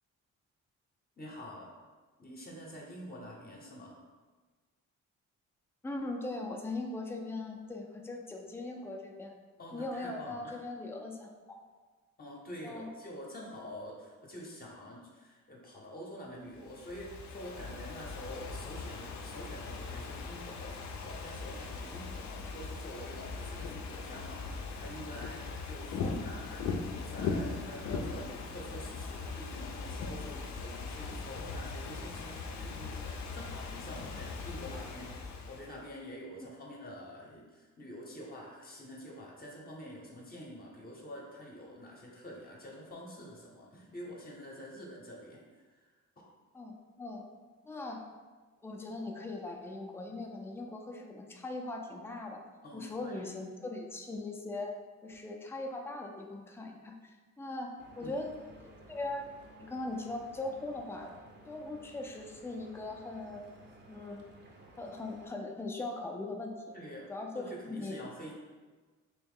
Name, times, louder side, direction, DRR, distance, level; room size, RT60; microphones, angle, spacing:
voice 1, 1.2-1.7 2.2-4.0 9.6-10.6 12.2-45.9 46.2-46.3 52.6-53.3 58.0-58.2 66.7-67.1 67.3-68.3, equal, 30° left, -2 dB, 0.8 m, -47 dB
voice 2, 5.8-9.3 9.7-11.6 12.6-12.9 26.0-26.2 46.5-47.3 47.6-48.0 48.6-52.4 52.7-54.7 55.0-58.3 58.6-59.3 59.6-61.1 61.5-63.4 63.9-64.2 64.8-66.7 67.1-67.9, left 2 dB, 10° left, 2 dB, 0.4 m, -40 dB
Ocean / Fireworks, 16.6-35.8, left 4 dB, 65° left, 0.6 m, -40 dB
Stream / Boat Water vehicle, 57.8-65.3, right 1 dB, 35° right, 0.7 m, -56 dB
3.1 x 3.0 x 3.6 m, 1.4 s
cardioid pair, 90°, 30 cm